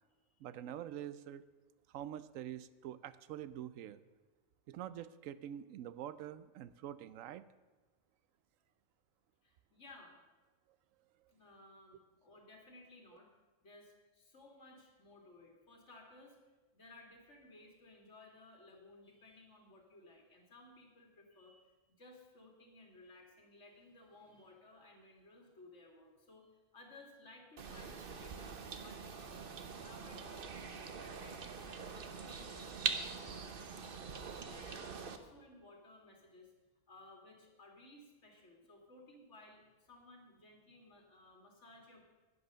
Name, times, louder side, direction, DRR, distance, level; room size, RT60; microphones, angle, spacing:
voice 1, 0.4-1.4 1.9-4.0 4.7-7.4, right 11 dB, 90° right, 15 dB, 1.0 m, -46 dB
voice 2, 9.4-10.2 11.3-13.3 13.6-29.3 29.7-34.0 34.3-36.5 36.9-42.1, left 2 dB, 65° left, 1 dB, 2.7 m, -59 dB
sound 1, 27.6-35.2, right 5 dB, 50° right, 1.0 m, -43 dB
11.0 x 9.8 x 6.6 m, 1.2 s
omnidirectional pair, 1.3 m